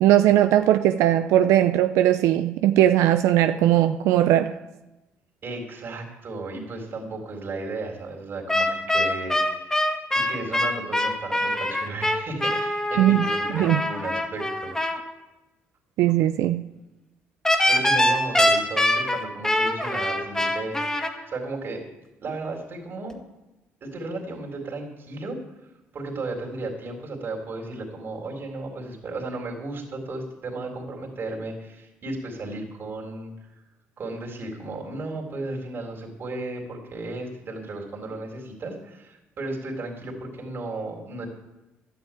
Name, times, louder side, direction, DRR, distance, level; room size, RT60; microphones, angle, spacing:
voice 1, 0.0-4.6 13.0-13.3 13.5-13.8 16.0-16.6, right 12 dB, 85° right, 9 dB, 0.5 m, -19 dB
voice 2, 5.4-9.9 10.1-14.7 17.7-20.8 21.3-21.8 22.2-23.2 23.8-25.4 25.9-33.3 34.0-41.3, right 2 dB, 50° right, 0 dB, 3.8 m, -34 dB
sound 1, 8.5-15.0 17.4-21.1, left 1 dB, 10° left, 1.9 m, -23 dB
12.0 x 9.4 x 9.0 m, 1.0 s
cardioid pair, 90°, 5 cm